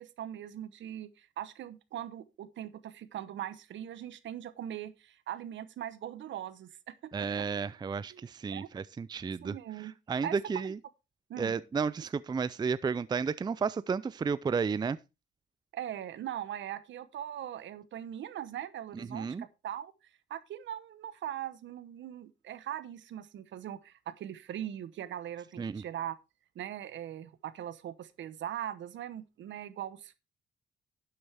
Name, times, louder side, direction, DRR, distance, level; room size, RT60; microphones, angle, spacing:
voice 1, 0.0-7.3 8.1-8.7 9.4-9.9 10.2-10.7 11.3-11.5 15.7-19.9 20.3-26.2 26.5-30.2, right 11 dB, 70° right, 0.9 m, -40 dB
voice 2, 7.1-10.8 11.4-15.0 18.9-19.4 25.6-25.8, right 5 dB, 20° right, 0.4 m, -32 dB
11.5 x 7.7 x 3.4 m
cardioid pair, 90°, 20 cm